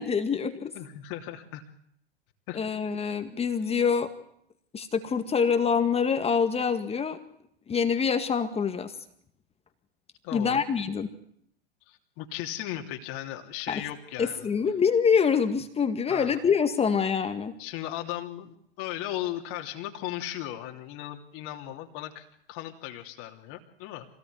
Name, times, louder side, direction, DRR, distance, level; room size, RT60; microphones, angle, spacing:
voice 1, 0.0-0.7 2.5-4.1 4.7-7.2 7.7-9.0 10.3-11.1 13.7-13.8 14.2-17.5, left 6 dB, 20° left, 8 dB, 2.0 m, -25 dB
voice 2, 0.7-1.6 2.5-2.6 10.2-10.6 11.9-14.5 16.1-16.4 17.6-24.1, left 13 dB, 50° left, 3 dB, 3.0 m, -37 dB
25.5 x 18.5 x 9.7 m, 0.70 s
hypercardioid pair, 100°, 31 cm